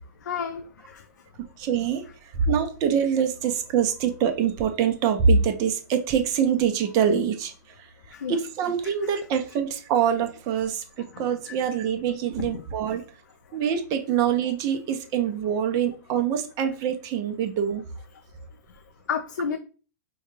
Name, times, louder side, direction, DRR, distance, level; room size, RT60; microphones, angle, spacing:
voice 1, 0.2-1.1 8.1-8.4 8.8-8.9 11.1-11.6 12.4-12.6 19.1-19.6, left 6 dB, 90° left, 8 dB, 0.4 m, -32 dB
voice 2, 1.6-2.0 2.4-7.5 7.8-7.9 8.3-13.0 13.5-17.8, right 7 dB, 40° right, 6 dB, 0.6 m, -24 dB
4.6 x 2.3 x 3.1 m, 0.36 s
hypercardioid pair, 125°, 9 cm